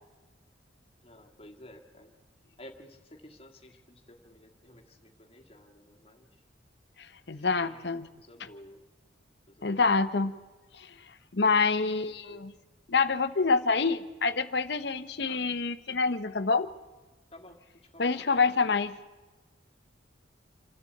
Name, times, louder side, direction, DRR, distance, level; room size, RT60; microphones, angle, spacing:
voice 1, 1.0-2.1 2.6-6.3 7.4-8.8 9.5-9.8 15.2-15.4 17.3-17.6 17.9-18.7, left 1 dB, 30° left, 3 dB, 1.9 m, -52 dB
voice 2, 7.0-8.1 9.6-10.3 10.7-10.9 11.3-12.5 12.9-16.7 18.0-19.0, left 4 dB, 60° left, 11 dB, 0.9 m, -27 dB
27.0 x 11.5 x 8.6 m, 1.2 s
head